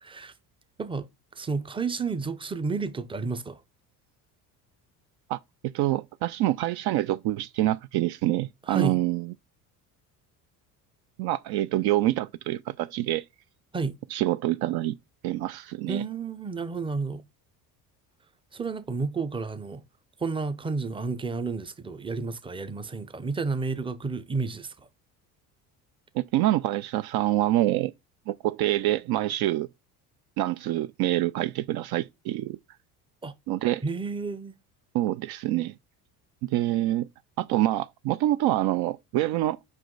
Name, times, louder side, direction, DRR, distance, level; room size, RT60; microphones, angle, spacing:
voice 1, 0.0-0.3 0.8-1.1 1.4-3.6 8.7-9.0 13.7-13.9 15.9-17.2 18.5-19.8 20.2-24.7 33.2-33.3 33.8-34.5, right 4 dB, 10° right, 0.7 m, -31 dB
voice 2, 5.3-9.3 11.2-13.2 14.1-14.9 15.2-16.0 26.1-27.9 28.3-29.7 30.4-32.6 33.5-33.8 34.9-35.7 36.4-37.1 37.4-39.6, right 15 dB, 60° right, 0.5 m, -26 dB
5.4 x 4.9 x 3.8 m
supercardioid pair, 75°, 45 cm